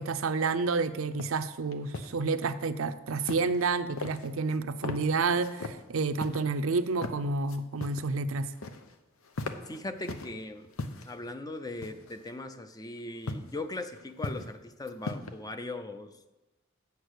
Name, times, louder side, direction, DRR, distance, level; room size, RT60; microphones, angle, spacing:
voice 1, 0.0-8.5, right 4 dB, 75° right, 11 dB, 0.5 m, -29 dB
sound 1, 1.2-1.4 1.7-2.1 3.2-3.7 4.0-4.6 4.8-5.0 5.4-5.8 6.2-6.4 6.9-7.2 7.5-8.1 8.4-9.0 9.2-10.3 10.7-11.1 11.8-12.2 13.3-13.5 13.9-14.6 14.9-15.3, left 3 dB, 85° left, 0.8 m, -38 dB
voice 2, 9.7-10.7 11.0-16.1, left 2 dB, 20° left, 9 dB, 0.5 m, -39 dB
8.1 x 7.1 x 6.4 m, 1.0 s
head